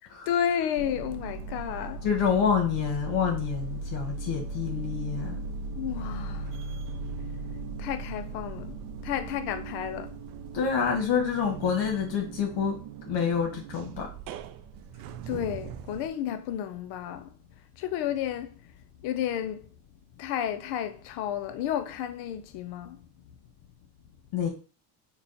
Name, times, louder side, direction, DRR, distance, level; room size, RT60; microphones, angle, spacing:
voice 1, 0.3-2.1 5.8-6.9 7.8-10.2 15.3-17.3 17.8-18.7 19.0-19.7 20.2-23.0, left 10 dB, 65° left, 0.7 m, -32 dB
sound 1, 0.8-16.1, right 3 dB, 55° right, 0.4 m, -38 dB
voice 2, 2.0-5.3 10.5-12.8 13.1-14.1 24.3-24.5, left 7 dB, 85° left, 1.2 m, -27 dB
4.1 x 2.3 x 3.9 m
cardioid pair, 120°, 42 cm